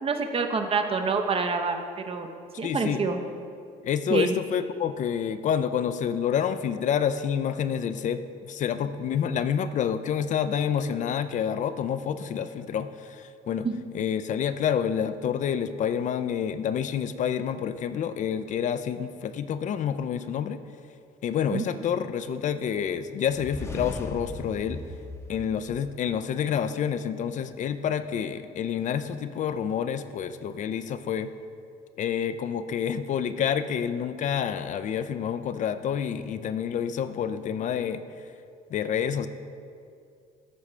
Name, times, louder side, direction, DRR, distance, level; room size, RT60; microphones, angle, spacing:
voice 1, 0.0-1.8 2.0-2.3 2.6-3.2 4.1-4.3 13.6-13.8 21.5-21.6, right 4 dB, 35° right, 5 dB, 0.7 m, -26 dB
voice 2, 2.6-3.0 3.8-13.7 13.9-20.6 21.2-24.8 25.3-31.3 32.0-38.0 38.7-39.3, left 8 dB, 45° left, 11 dB, 0.4 m, -28 dB
sound 1, 23.2-26.2, left 2 dB, 15° left, 0.8 m, -38 dB
13.0 x 4.9 x 3.2 m, 2.4 s
cardioid pair, 110°, 17 cm